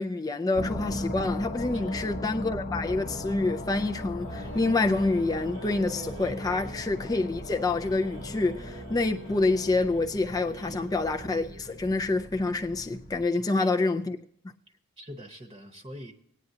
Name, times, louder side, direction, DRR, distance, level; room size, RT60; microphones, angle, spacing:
voice 1, 0.0-14.2, left 3 dB, 15° left, 0.4 m, -27 dB
sound 1, 0.5-13.3, left 1 dB, 30° left, 0.8 m, -38 dB
sound 2, 4.2-11.9, right 3 dB, 70° right, 0.9 m, -47 dB
voice 2, 13.3-13.7 15.0-16.1, equal, 20° right, 0.9 m, -44 dB
19.5 x 9.1 x 2.8 m
head